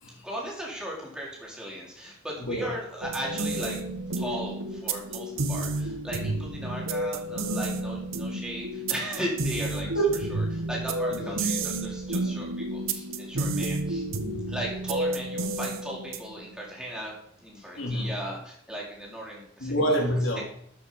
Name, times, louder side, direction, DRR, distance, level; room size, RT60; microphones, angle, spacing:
voice 1, 0.2-3.8 4.2-9.9 10.3-14.0 14.5-17.1 17.4-19.7, right 1 dB, 5° right, -4 dB, 3.8 m, -37 dB
voice 2, 2.4-2.8 9.8-10.2 11.1-11.3 17.8-18.1 19.6-20.4, right 1 dB, 65° left, 0 dB, 3.1 m, -27 dB
sound 1, 3.0-16.5, right 2 dB, 70° right, 1.2 m, -31 dB
13.0 x 7.0 x 5.6 m, 0.67 s
head